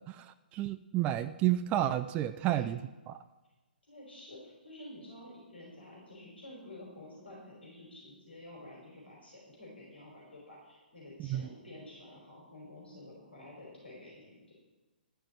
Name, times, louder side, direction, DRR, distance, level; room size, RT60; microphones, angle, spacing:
voice 1, 0.1-2.8 3.1-3.2 11.2-11.4, right 13 dB, 25° right, 11 dB, 0.3 m, -31 dB
voice 2, 3.9-14.5, left 1 dB, 85° left, -4 dB, 5.0 m, -50 dB
12.5 x 6.5 x 8.0 m, 1.2 s
figure-of-eight pair, 130°, 6 cm